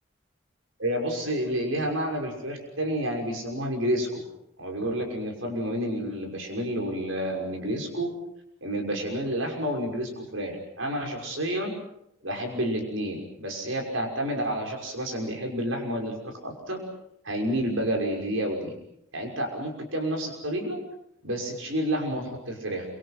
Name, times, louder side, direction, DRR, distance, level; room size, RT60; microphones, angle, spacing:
voice 1, 0.8-4.2 4.6-8.1 8.6-11.7 12.2-16.8 17.2-18.7 19.1-20.8 21.2-22.9, equal, 75° right, 2 dB, 6.0 m, -30 dB
28.0 x 26.0 x 5.9 m, 0.76 s
head